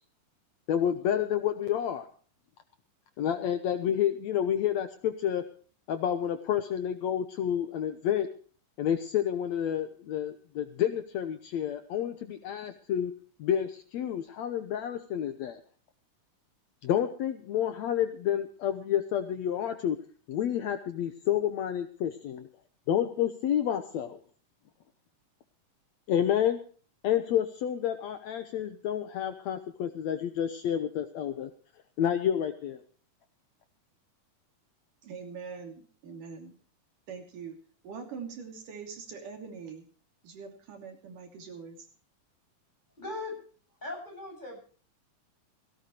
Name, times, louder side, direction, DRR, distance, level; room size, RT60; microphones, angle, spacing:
voice 1, 0.7-2.1 3.2-5.4 5.9-8.3 8.8-13.1 13.4-15.6 16.8-20.0 20.3-22.5 22.9-24.2 26.1-26.6 27.0-31.5 32.0-32.8, left 10 dB, 70° left, 8 dB, 2.0 m, -29 dB
voice 2, 35.0-36.6 37.1-37.6 37.8-39.9 40.2-41.9, right 6 dB, 80° right, 3 dB, 4.4 m, -43 dB
voice 3, 43.0-43.4 43.8-44.6, left 2 dB, 15° left, 1 dB, 7.4 m, -38 dB
17.5 x 17.0 x 3.1 m, 0.42 s
omnidirectional pair, 3.7 m